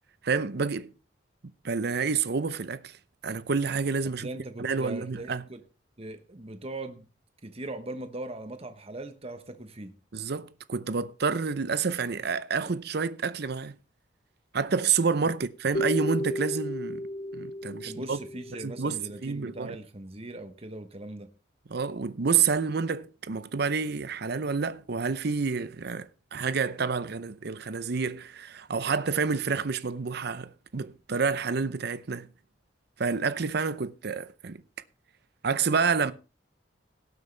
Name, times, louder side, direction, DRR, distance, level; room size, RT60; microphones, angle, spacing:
voice 1, 0.2-0.9 1.6-3.0 3.2-4.3 4.6-5.4 10.1-13.8 14.5-17.0 17.3-18.2 18.6-19.8 21.7-32.3 33.0-34.6 35.4-36.1, right 5 dB, 60° right, 0.7 m, -29 dB
voice 2, 4.2-5.6 6.0-7.1 7.4-9.9 17.8-21.3, right 2 dB, 35° right, 1.1 m, -40 dB
sound 1, 15.7-19.5, left 1 dB, 40° left, 2.3 m, -34 dB
18.0 x 7.9 x 3.3 m
head